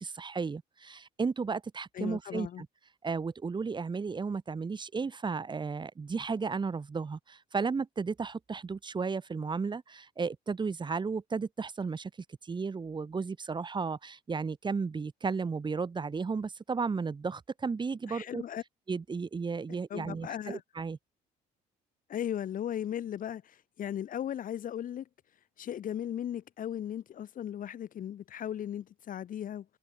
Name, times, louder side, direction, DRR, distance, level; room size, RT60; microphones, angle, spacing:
voice 1, 0.0-2.7 3.0-12.1 12.4-18.4 18.9-21.0, right 5 dB, 25° right, 4.4 m, -34 dB
voice 2, 1.9-2.6 18.1-18.6 19.9-20.6 22.1-25.1 25.6-29.7, left 10 dB, 55° left, 2.5 m, -37 dB
cardioid pair, 110°, 17 cm